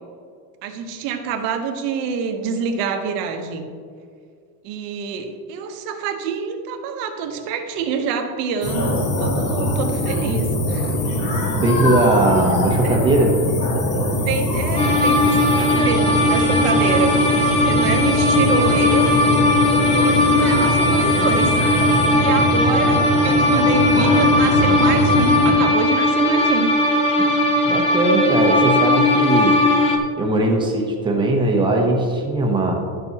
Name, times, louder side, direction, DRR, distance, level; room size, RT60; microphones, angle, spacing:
voice 1, 0.6-3.7 4.6-10.9 12.8-13.0 14.1-19.2 19.8-21.5 22.2-26.7, right 6 dB, 90° right, 5 dB, 1.1 m, -26 dB
sound 1, 8.6-25.5, left 1 dB, 40° left, 1.2 m, -22 dB
voice 2, 11.5-13.3 27.2-29.6 30.2-32.7, right 2 dB, 10° right, 0 dB, 0.8 m, -19 dB
sound 2, 14.8-30.0, left 2 dB, 15° left, 0.3 m, -18 dB
11.0 x 6.8 x 2.9 m, 2.1 s
cardioid pair, 175°, 46 cm